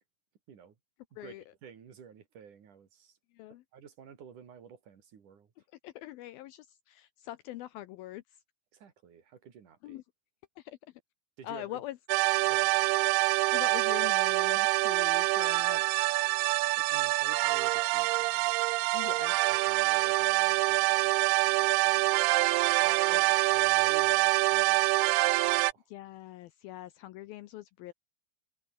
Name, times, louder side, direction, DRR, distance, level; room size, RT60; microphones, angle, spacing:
voice 1, 1.2-3.2 3.7-5.5 8.7-10.0 11.4-11.8 12.4-12.7 16.8-19.3 19.7-25.9, right 7 dB, 50° right, 3.9 m, -52 dB
voice 2, 5.8-8.4 9.8-10.0 10.6-10.8 11.4-12.0 13.5-15.8 18.9-19.3 23.1-23.4 25.9-27.9, left 15 dB, 85° left, 2.1 m, -43 dB
sound 1, 12.1-25.7, right 21 dB, 85° right, 2.3 m, -26 dB
omnidirectional pair, 5.1 m